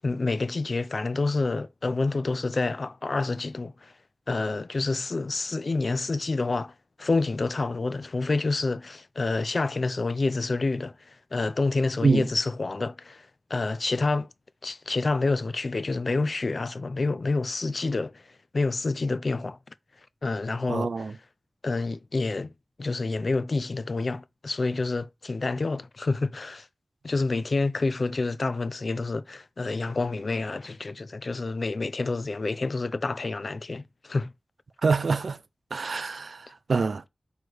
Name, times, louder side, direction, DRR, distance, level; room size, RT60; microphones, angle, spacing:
voice 1, 0.0-3.9 4.3-14.3 14.6-19.6 20.2-21.2 21.6-22.5 22.8-26.7 27.0-34.3, left 3 dB, 55° left, 0.4 m, -28 dB
voice 2, 20.7-21.1 34.8-35.4 35.7-37.0, right 4 dB, 80° right, 0.4 m, -25 dB
6.1 x 3.2 x 4.9 m
wide cardioid pair, 100°, 0 cm